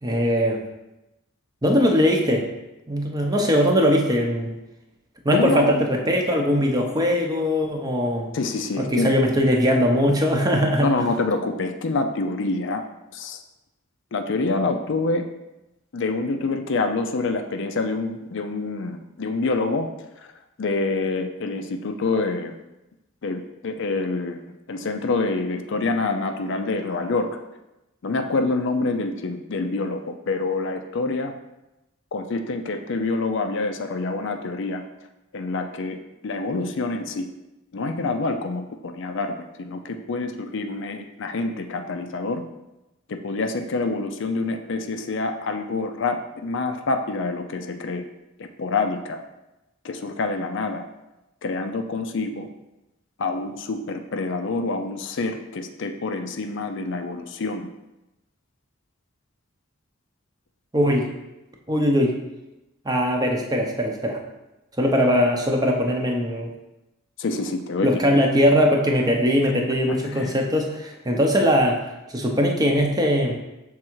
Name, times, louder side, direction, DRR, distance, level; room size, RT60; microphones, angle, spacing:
voice 1, 0.0-0.6 1.6-2.5 2.9-4.5 5.2-8.3 8.8-11.1 60.7-61.1 61.7-62.1 62.8-64.2 64.8-66.5 67.8-71.8 72.1-73.4, equal, 20° right, 1 dB, 0.7 m, -20 dB
voice 2, 5.3-5.9 8.3-9.1 10.8-12.8 13.1-13.4 14.1-15.2 15.9-19.9 20.6-22.6 23.2-24.4 24.7-27.3 28.0-31.3 32.1-34.8 35.3-36.0 36.2-37.3 37.7-42.4 43.1-48.0 48.4-49.2 49.8-50.8 51.4-52.5 53.2-57.7 67.2-67.9 69.9-70.4, left 3 dB, 60° left, 6 dB, 0.5 m, -26 dB
6.2 x 3.6 x 4.5 m, 0.96 s
head